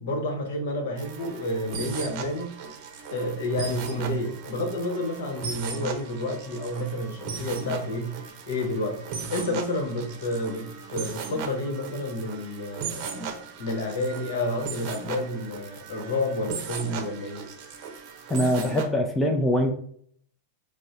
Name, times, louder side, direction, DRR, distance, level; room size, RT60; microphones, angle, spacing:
voice 1, 0.0-2.5 3.1-8.2 8.5-9.0 9.3-13.1 13.6-17.5, left 1 dB, 65° left, 0.9 m, -30 dB
sound 1, 1.0-18.8, right 5 dB, 50° right, 0.7 m, -37 dB
voice 2, 18.3-19.7, equal, 10° left, 0.5 m, -23 dB
4.1 x 2.1 x 2.5 m
hypercardioid pair, 95°, 0 cm